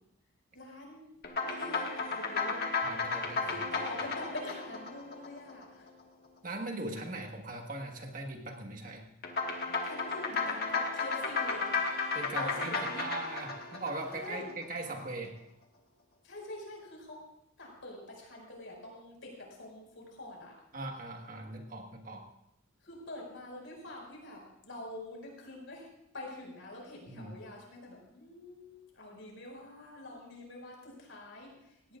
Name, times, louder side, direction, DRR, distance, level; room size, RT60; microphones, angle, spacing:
voice 1, 0.5-1.1 1.4-2.6 3.4-5.9 9.8-11.8 12.3-13.1 14.1-14.5 16.2-17.2 17.6-20.5 22.8-25.9 26.1-32.0, left 2 dB, 65° left, -1 dB, 5.4 m, -45 dB
sound 1, 1.2-5.9 9.2-14.6, left 4 dB, 50° left, 1.7 m, -34 dB
voice 2, 2.8-3.4 6.4-9.0 12.1-15.3 20.7-22.3 27.1-27.3, right 2 dB, 40° right, 2 dB, 1.5 m, -40 dB
18.0 x 17.5 x 2.5 m, 0.81 s
head